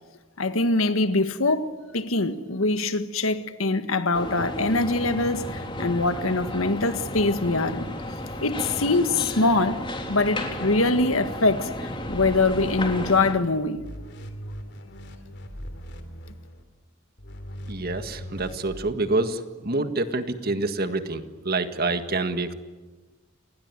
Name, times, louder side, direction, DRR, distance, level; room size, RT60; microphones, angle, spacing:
voice 1, 0.4-7.9 8.4-9.8 10.1-13.8, left 2 dB, 90° left, 1.7 m, -23 dB
sound 1, 4.1-13.3, left 1 dB, 25° left, 3.4 m, -33 dB
sound 2, 12.0-13.4 13.8-16.6 17.2-18.9, equal, 55° left, 3.1 m, -40 dB
voice 2, 17.7-22.5, right 2 dB, 50° right, 1.8 m, -27 dB
30.0 x 20.0 x 9.7 m
head